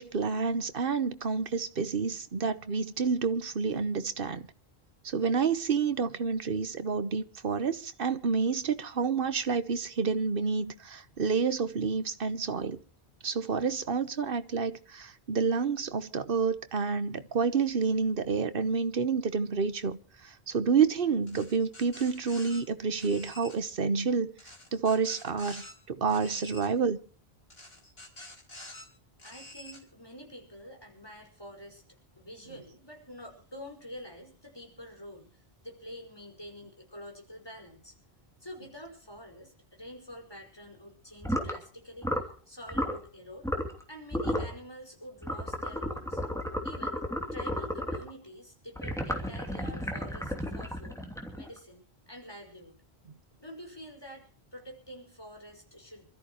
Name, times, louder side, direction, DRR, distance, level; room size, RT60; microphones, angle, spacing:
voice 1, 0.0-4.5 5.0-12.8 13.2-24.3 24.7-27.0, right 5 dB, 60° right, 1.3 m, -29 dB
sound 1, 21.3-22.6 23.0-23.6 24.4-25.7 26.1-26.7 27.5-28.9 29.2-29.8, left 1 dB, 65° left, 4.5 m, -48 dB
voice 2, 29.2-31.8 32.2-38.0 38.4-43.5 43.9-46.2 46.6-47.1 47.3-51.0 51.3-52.8 53.4-56.0, equal, 20° left, 5.4 m, -47 dB
sound 2, 41.2-41.6 42.0-42.3 42.7-43.0 43.4-43.8 44.1-44.5 45.2-48.1 48.8-51.6, equal, 5° left, 2.9 m, -33 dB
27.0 x 13.5 x 3.1 m
omnidirectional pair, 1.1 m